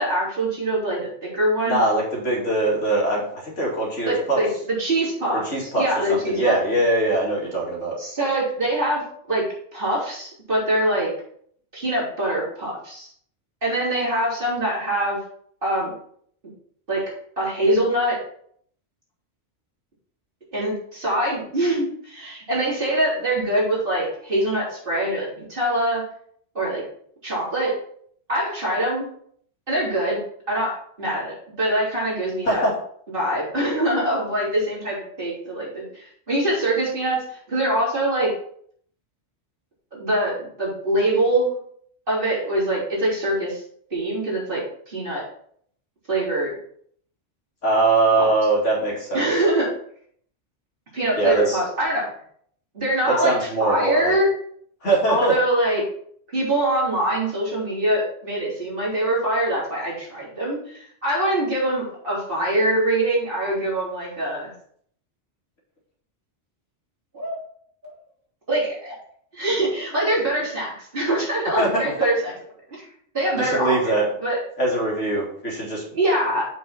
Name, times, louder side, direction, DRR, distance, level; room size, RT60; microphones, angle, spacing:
voice 1, 0.0-1.8 4.1-5.4 5.8-6.5 8.0-11.1 11.7-13.1 13.6-15.2 15.6-15.9 16.9-18.2 20.5-26.1 26.5-26.8 27.2-27.8 28.3-29.1 29.7-30.2 30.5-32.7 33.1-38.3 39.9-41.6 42.1-43.6 43.9-45.2 46.1-46.5 48.2-48.3 49.1-49.7 50.9-52.1 52.7-54.3 55.1-55.8 56.3-64.5 67.1-67.4 67.8-67.9 68.5-69.0 69.3-72.3 72.7-72.9 73.1-74.4 75.9-76.4, right 1 dB, 50° right, -6 dB, 3.8 m, -24 dB
voice 2, 1.6-4.4 5.3-5.8 6.1-7.9 32.4-32.7 47.6-49.3 51.2-51.6 53.0-54.2 54.8-55.3 71.6-71.9 73.4-74.0 74.6-75.8, right 2 dB, 85° left, -3 dB, 2.8 m, -22 dB
7.2 x 6.1 x 4.2 m, 0.63 s
omnidirectional pair, 1.2 m